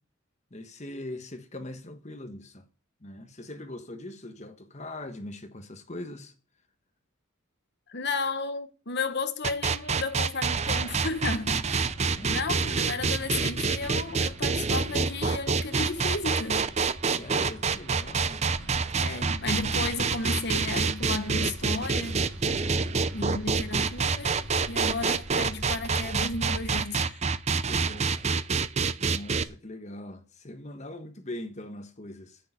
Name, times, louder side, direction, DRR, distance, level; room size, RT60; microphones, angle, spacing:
voice 1, 0.5-2.6 3.0-6.3 12.2-12.4 17.0-18.5 22.8-23.5 27.5-28.3 29.0-32.4, left 1 dB, 30° left, 1.3 m, -41 dB
voice 2, 7.9-11.8 12.3-16.7 18.9-22.3 23.1-27.2 28.8-28.9, left 3 dB, 50° left, 1.3 m, -33 dB
sound 1, 9.4-29.4, right 5 dB, 30° right, 0.6 m, -27 dB
sound 2, 10.4-26.8, right 1 dB, 55° right, 5.2 m, -43 dB
10.0 x 8.5 x 9.3 m
head